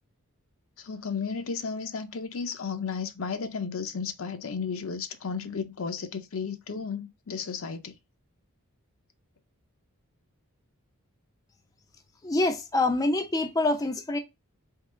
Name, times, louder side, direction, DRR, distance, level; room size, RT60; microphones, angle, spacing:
voice 1, 0.8-7.9, left 5 dB, 65° left, 0.6 m, -33 dB
voice 2, 12.2-14.2, left 2 dB, 15° left, 0.4 m, -26 dB
3.7 x 3.5 x 3.1 m
head